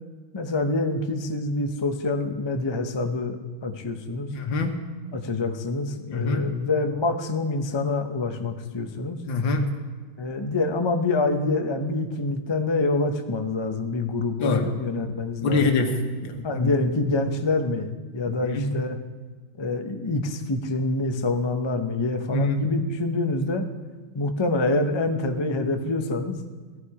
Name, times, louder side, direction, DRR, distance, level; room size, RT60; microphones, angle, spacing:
voice 1, 0.3-3.4 3.6-4.3 5.1-9.2 10.2-15.8 16.4-19.0 19.6-23.7 24.1-26.4, left 2 dB, 45° left, 6 dB, 0.3 m, -26 dB
voice 2, 4.3-4.8 6.1-6.5 9.2-9.7 14.4-14.7 15.4-16.7 18.3-18.8 22.3-22.7, left 3 dB, 70° left, 5 dB, 2.0 m, -25 dB
15.5 x 14.5 x 4.9 m, 1.4 s
omnidirectional pair, 2.2 m